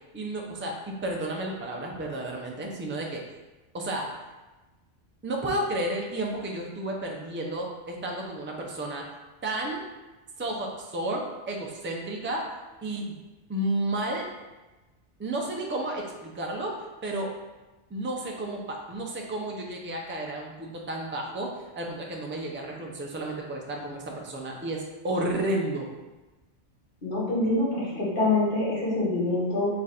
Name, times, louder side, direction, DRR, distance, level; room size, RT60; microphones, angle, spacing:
voice 1, 0.1-3.2 3.7-4.1 5.2-9.1 9.4-9.8 10.4-12.5 12.8-13.0 13.5-14.3 15.2-16.8 17.0-17.3 17.9-25.9, right 1 dB, 20° right, 0 dB, 0.3 m, -32 dB
voice 2, 27.0-29.7, left 2 dB, 50° left, -6 dB, 1.5 m, -25 dB
3.7 x 3.3 x 4.2 m, 1.1 s
omnidirectional pair, 1.2 m